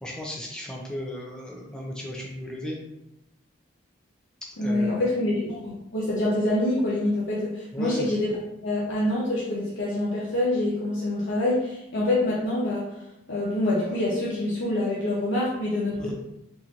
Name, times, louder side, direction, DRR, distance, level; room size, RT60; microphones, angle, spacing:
voice 1, 0.0-2.8 4.6-5.1 7.7-8.1 16.0-16.1, left 1 dB, 5° left, -2 dB, 0.4 m, -35 dB
voice 2, 4.6-8.3 8.6-12.9 13.3-16.1, left 1 dB, 70° left, -7 dB, 0.7 m, -26 dB
3.6 x 2.5 x 2.9 m, 0.88 s
head